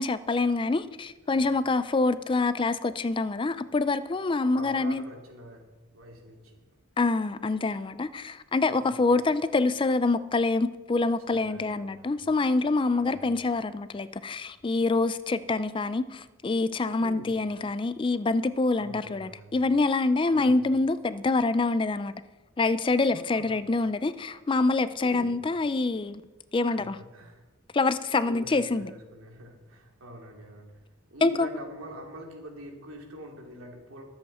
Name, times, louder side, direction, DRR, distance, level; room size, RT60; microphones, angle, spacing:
voice 1, 0.0-5.0 7.0-22.1 22.6-26.2 26.5-27.0 27.7-28.9 31.2-31.5, left 3 dB, 25° left, 0.4 m, -26 dB
voice 2, 4.4-5.6 5.9-6.6 8.7-9.0 11.3-12.2 12.9-13.3 17.0-17.4 18.8-19.6 20.3-20.6 23.1-23.6 25.0-25.4 26.7-27.4 28.2-30.7 31.1-34.0, right 1 dB, 80° right, 2.8 m, -45 dB
23.0 x 7.7 x 4.3 m
head